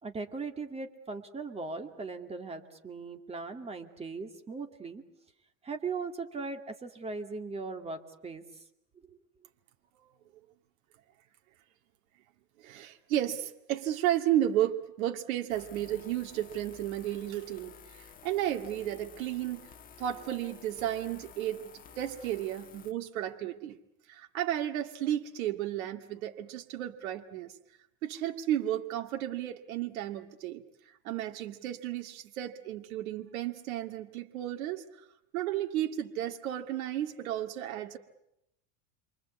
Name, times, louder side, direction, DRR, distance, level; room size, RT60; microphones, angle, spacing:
voice 1, 0.0-5.0 5.6-8.4 9.1-9.2, right 4 dB, 15° right, 5 dB, 2.5 m, -39 dB
voice 2, 12.6-19.7 20.0-23.8 24.1-27.6 28.0-35.1 35.3-38.0, right 12 dB, 90° right, 4 dB, 2.2 m, -33 dB
sound 1, 15.5-22.9, left 7 dB, 20° left, 1.5 m, -52 dB
29.0 x 24.5 x 8.5 m, 0.81 s
supercardioid pair, 155°, 40 cm